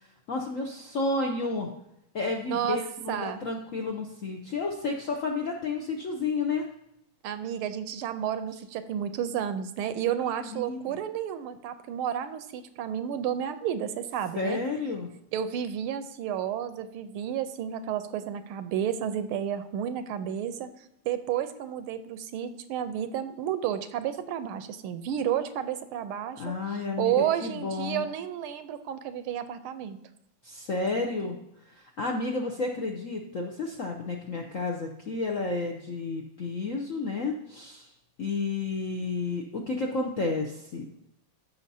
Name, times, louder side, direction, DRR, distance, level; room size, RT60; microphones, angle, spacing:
voice 1, 0.3-1.7 2.1-6.7 10.2-11.0 14.4-15.1 26.4-27.1 27.4-28.1 30.4-31.4 31.6-37.9 38.2-40.9, left 3 dB, 65° left, 1 dB, 0.8 m, -31 dB
voice 2, 2.5-2.8 3.1-3.4 7.2-14.6 15.3-20.7 21.0-30.0, right 9 dB, 85° right, 11 dB, 1.5 m, -31 dB
14.5 x 5.6 x 2.7 m, 0.80 s
omnidirectional pair, 2.4 m